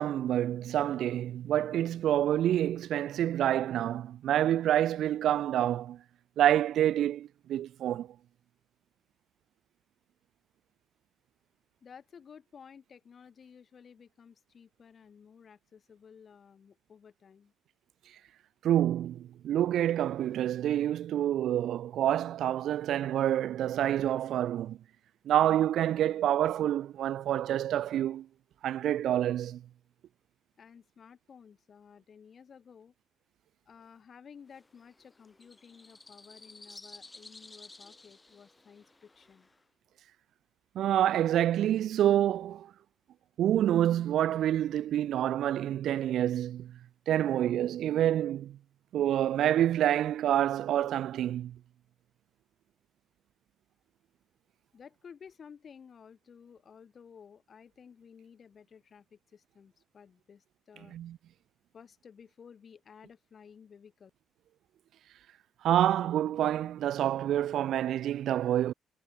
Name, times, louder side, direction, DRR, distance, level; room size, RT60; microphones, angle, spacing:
voice 1, 0.0-6.0 6.4-8.1 18.6-24.8 25.3-28.3 28.6-29.6 40.8-42.7 43.4-46.8 47.1-48.6 48.9-51.6 60.9-61.2 65.6-68.7, right 11 dB, 75° right, 0.3 m, -27 dB
voice 2, 11.8-17.5 30.6-32.9 33.7-39.5 54.7-60.9 61.7-64.1, left 7 dB, 50° left, 2.7 m, -54 dB
sound 1, 34.5-39.6, left 2 dB, 20° left, 2.0 m, -53 dB
cardioid pair, 90°, 0 cm